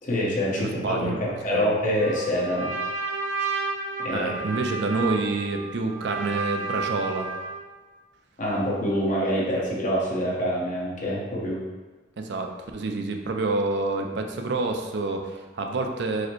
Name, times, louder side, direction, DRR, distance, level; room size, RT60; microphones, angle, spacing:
voice 1, 0.0-2.7 4.0-4.3 8.4-11.6, equal, 45° left, -5 dB, 1.1 m, -26 dB
voice 2, 0.6-1.6 4.1-7.3 12.2-16.3, right 3 dB, 65° right, 3 dB, 0.5 m, -28 dB
Trumpet, 2.0-7.6, right 4 dB, 90° right, 0.8 m, -31 dB
4.8 x 2.1 x 4.5 m, 1.3 s
head